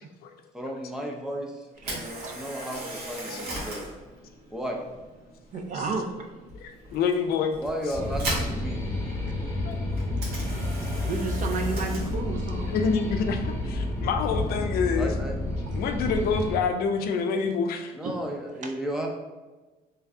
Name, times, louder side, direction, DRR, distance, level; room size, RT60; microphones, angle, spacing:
voice 1, 0.5-1.5 1.9-3.8 4.5-4.8 7.6-8.8 15.0-15.3 17.9-19.1, equal, 5° right, 0 dB, 0.6 m, -33 dB
Camera, 1.7-15.8, right 1 dB, 70° right, 1.3 m, -40 dB
voice 2, 1.9-2.4 5.5-6.1 10.9-12.7 14.3-14.5 18.0-18.1 18.6-18.7, right 4 dB, 50° right, 5 dB, 0.5 m, -32 dB
voice 3, 6.5-7.6 9.6-9.8 12.7-15.1 15.7-17.9, left 5 dB, 65° left, 6 dB, 0.4 m, -27 dB
sound 1, 7.9-16.6, left 1 dB, 15° left, 1.0 m, -30 dB
3.2 x 2.3 x 3.7 m, 1.2 s
cardioid pair, 110°, 17 cm